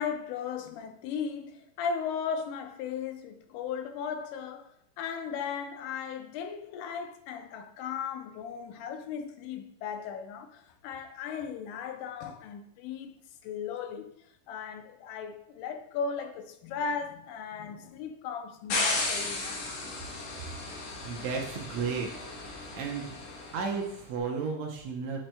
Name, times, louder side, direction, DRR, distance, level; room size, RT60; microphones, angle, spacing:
voice 1, 0.0-14.1 14.5-19.6 20.1-20.2, left 6 dB, 85° left, 2.2 m, -37 dB
sound 1, 18.7-23.8, left 3 dB, 65° left, 2.3 m, -34 dB
voice 2, 21.0-22.1 22.7-23.1 23.5-25.2, right 5 dB, 70° right, 1.8 m, -33 dB
7.5 x 7.2 x 2.2 m
omnidirectional pair, 3.6 m